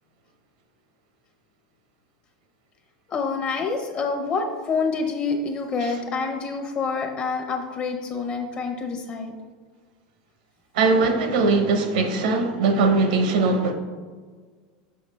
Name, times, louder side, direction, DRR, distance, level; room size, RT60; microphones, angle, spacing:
voice 1, 3.1-9.3, left 4 dB, 45° left, 0.8 m, -27 dB
voice 2, 10.7-13.7, right 3 dB, 80° right, 0.9 m, -20 dB
6.1 x 5.7 x 3.3 m
hypercardioid pair, 105°, 4 cm